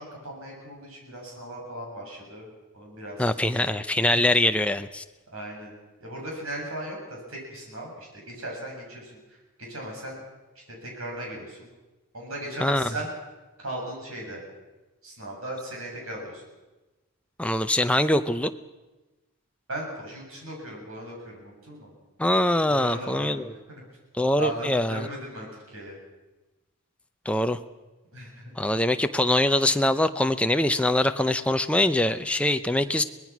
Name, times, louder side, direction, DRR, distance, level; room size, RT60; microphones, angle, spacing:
voice 1, 0.0-2.5 2.7-3.2 3.6-3.7 4.1-4.2 5.3-5.7 6.0-9.1 9.6-10.2 10.7-11.7 12.1-13.1 13.6-14.4 15.0-16.4 19.7-21.9 22.7-23.8 24.4-26.0 28.1-28.5, right 1 dB, 70° right, -1 dB, 7.8 m, -37 dB
voice 2, 3.2-5.0 12.6-12.9 17.4-18.5 22.2-23.5 24.1-25.1 27.3-27.6 28.6-33.0, left 1 dB, 5° left, 9 dB, 0.6 m, -23 dB
24.5 x 19.0 x 6.1 m, 1.1 s
head